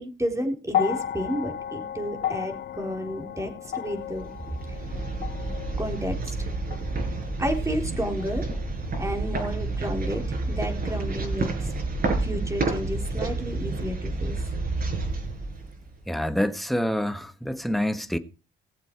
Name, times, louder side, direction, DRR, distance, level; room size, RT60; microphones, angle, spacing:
voice 1, 0.0-4.3 5.8-6.4 7.4-8.4 9.0-11.7 12.2-14.4, equal, 15° right, 3.9 m, -31 dB
sound 1, 0.7-9.0 10.1-10.2, left 10 dB, 55° left, 0.7 m, -34 dB
sound 2, 4.1-16.1, right 3 dB, 50° right, 5.5 m, -30 dB
voice 2, 16.1-18.2, equal, ahead, 1.5 m, -27 dB
19.5 x 7.5 x 4.7 m
cardioid pair, 90°, 20 cm